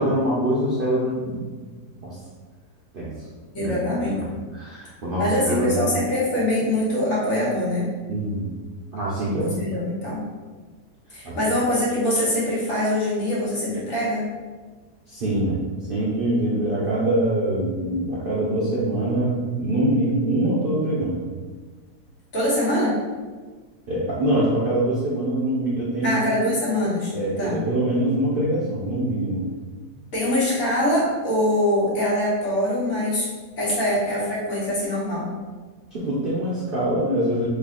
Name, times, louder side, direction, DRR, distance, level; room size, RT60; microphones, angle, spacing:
voice 1, 0.0-1.6 2.0-2.2 2.9-3.3 3.6-3.7 4.1-5.9 8.1-8.5 8.9-9.7 11.2-11.4 15.1-15.6 15.9-21.2 23.9-26.2 27.1-29.5 35.9-37.5, right 1 dB, 75° right, -7 dB, 0.5 m, -24 dB
voice 2, 3.5-4.2 5.2-7.9 9.6-10.2 11.1-14.3 22.3-23.0 26.0-27.1 27.4-27.6 30.1-33.3 33.6-35.3, left 1 dB, 55° left, -7 dB, 1.5 m, -23 dB
3.3 x 2.4 x 3.7 m, 1.4 s
omnidirectional pair, 1.8 m